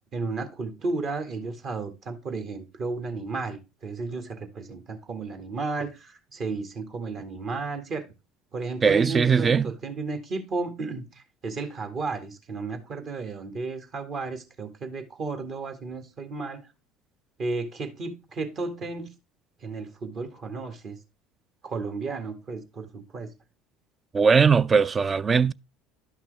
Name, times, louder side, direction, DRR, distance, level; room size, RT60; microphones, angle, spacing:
voice 1, 0.1-8.1 8.5-16.6 17.4-19.1 19.6-21.0 21.6-23.3, right 3 dB, 45° right, 1.9 m, -33 dB
voice 2, 8.8-9.7 24.1-25.5, right 5 dB, 30° right, 0.4 m, -20 dB
11.5 x 5.8 x 3.4 m
hypercardioid pair, 65°, 0 cm